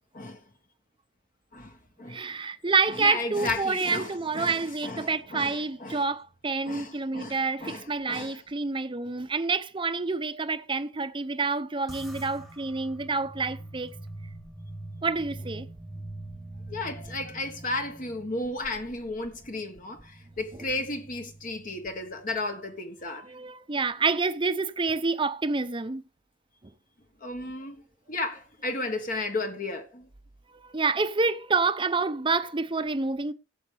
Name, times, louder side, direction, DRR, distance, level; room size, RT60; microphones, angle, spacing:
voice 1, 1.5-2.3 2.9-6.0 6.6-8.4 16.7-23.3 27.2-27.8 28.1-30.1, left 2 dB, 45° left, 1.4 m, -34 dB
voice 2, 2.1-14.0 15.0-15.7 20.5-20.6 23.0-26.0 30.5-33.3, right 4 dB, 25° right, 0.7 m, -28 dB
sound 1, 11.9-22.5, right 1 dB, ahead, 1.3 m, -44 dB
16.5 x 7.1 x 3.4 m
head